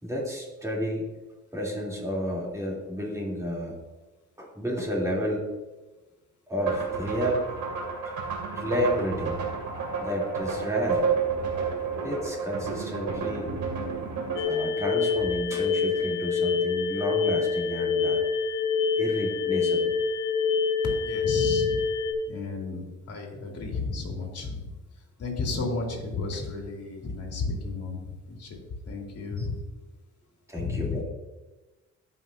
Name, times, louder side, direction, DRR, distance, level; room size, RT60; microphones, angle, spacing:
voice 1, 0.0-1.0 1.5-3.8 4.4-5.5 6.5-7.4 8.0-8.1 8.5-9.4 10.0-11.1 12.0-13.5 14.4-18.2 19.0-19.9 29.4-29.5 30.5-31.0, equal, 10° right, -3 dB, 3.1 m, -31 dB
sound 1, 6.6-14.4, right 5 dB, 80° right, 2.6 m, -30 dB
sound 2, 14.4-22.1, left 5 dB, 85° left, 1.7 m, -26 dB
voice 2, 21.0-21.8 22.3-24.7 25.2-28.6 28.9-29.5 30.5-31.0, left 3 dB, 55° left, 0 dB, 2.6 m, -33 dB
15.0 x 5.7 x 2.7 m, 1.1 s
cardioid pair, 90°, 30 cm